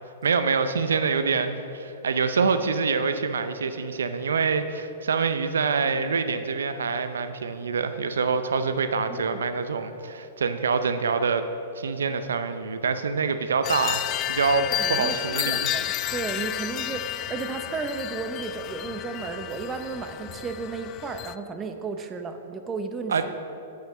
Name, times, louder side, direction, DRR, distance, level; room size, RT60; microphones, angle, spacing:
voice 1, 0.2-11.4 11.8-14.0 14.3-14.6 14.9-15.7 23.1-23.3, right 5 dB, 85° right, 10 dB, 0.5 m, -25 dB
voice 2, 9.1-9.4 14.5-23.3, right 4 dB, 20° right, 7 dB, 0.7 m, -33 dB
sound 1, 13.6-21.3, left 12 dB, 35° left, 0.3 m, -31 dB
8.8 x 5.7 x 7.4 m, 2.9 s
hypercardioid pair, 125°, 0 cm